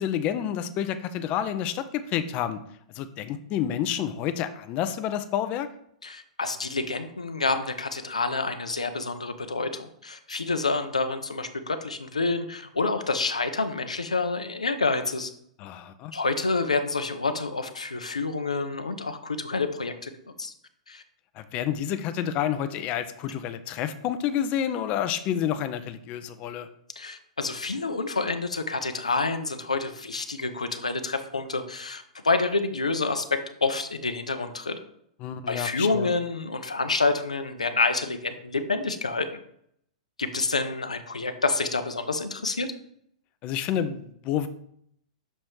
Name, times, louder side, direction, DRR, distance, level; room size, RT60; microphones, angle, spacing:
voice 1, 0.0-2.6 2.9-5.7 15.6-16.1 21.4-26.7 35.2-36.1 43.4-44.5, left 9 dB, 35° left, 11 dB, 0.5 m, -29 dB
voice 2, 6.0-15.3 16.1-20.1 20.4-20.5 20.9-21.0 27.0-34.8 35.5-39.3 40.2-42.7, left 3 dB, 85° left, 8 dB, 0.6 m, -28 dB
6.5 x 3.1 x 4.6 m, 0.69 s
figure-of-eight pair, 105°, 4 cm